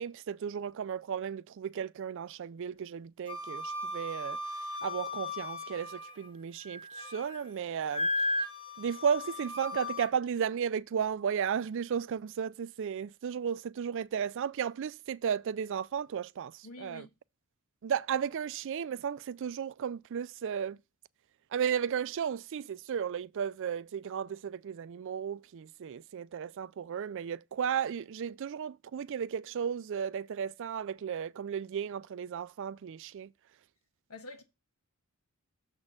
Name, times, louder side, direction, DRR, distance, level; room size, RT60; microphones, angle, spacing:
voice 1, 0.0-4.4 4.8-8.1 8.8-17.1 17.8-20.8 21.5-33.3, right 7 dB, 60° right, 0.3 m, -34 dB
Wind instrument woodwind instrument, 3.3-6.3 6.7-7.4 7.9-10.1, left 1 dB, 25° left, 1.2 m, -36 dB
voice 2, 16.6-17.1 34.1-34.4, left 2 dB, 85° left, 1.5 m, -46 dB
7.1 x 4.2 x 6.3 m
head